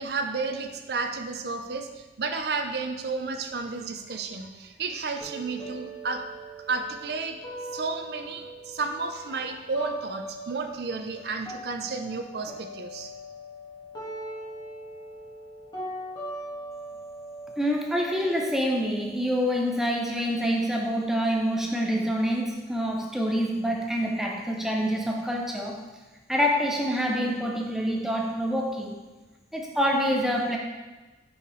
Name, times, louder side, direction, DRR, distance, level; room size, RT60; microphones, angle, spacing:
voice 1, 0.0-6.2 6.7-7.4 7.7-13.1, right 4 dB, 60° right, 6 dB, 0.5 m, -32 dB
sound 1, 5.2-11.2 11.4-19.2, right 1 dB, 25° left, 1.6 m, -41 dB
voice 2, 17.6-25.8 26.3-29.0 29.5-30.6, equal, ahead, 0 dB, 0.5 m, -26 dB
5.6 x 5.5 x 3.1 m, 1.2 s
head